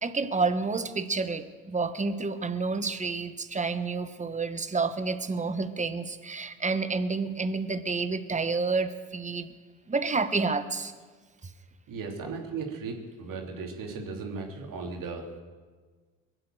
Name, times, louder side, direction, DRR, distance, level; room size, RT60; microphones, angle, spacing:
voice 1, 0.0-9.5 9.9-10.9, right 4 dB, 20° right, 11 dB, 1.2 m, -29 dB
voice 2, 11.9-15.4, right 4 dB, 55° right, 1 dB, 3.1 m, -36 dB
22.0 x 7.8 x 7.8 m, 1.4 s
hypercardioid pair, 70°, 39 cm